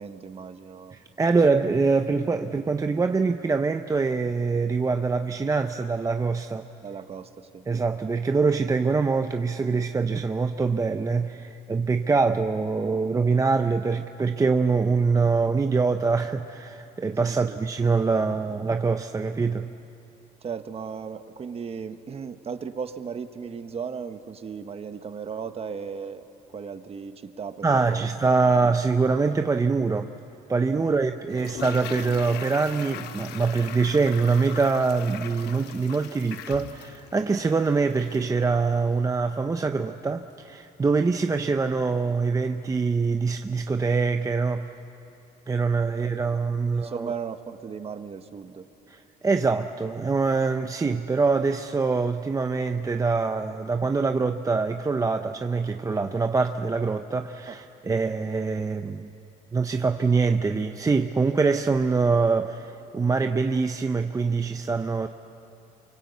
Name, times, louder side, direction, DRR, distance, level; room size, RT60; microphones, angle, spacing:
voice 1, 0.0-1.0 6.8-7.6 17.2-17.6 20.4-26.3 26.5-28.0 30.8-31.0 31.4-31.5 45.8-46.2 46.6-48.6 57.5-57.6, right 6 dB, 35° right, 9 dB, 1.3 m, -36 dB
voice 2, 0.9-6.7 7.7-19.7 27.6-30.1 30.5-44.7 45.5-47.1 48.9-59.1 59.5-65.1, right 4 dB, 20° right, 7 dB, 0.7 m, -24 dB
Toilet flush, 31.3-38.4 38.6-38.7, left 11 dB, 80° left, 1.0 m, -40 dB
28.5 x 24.5 x 8.2 m, 3.0 s
cardioid pair, 110°, 17 cm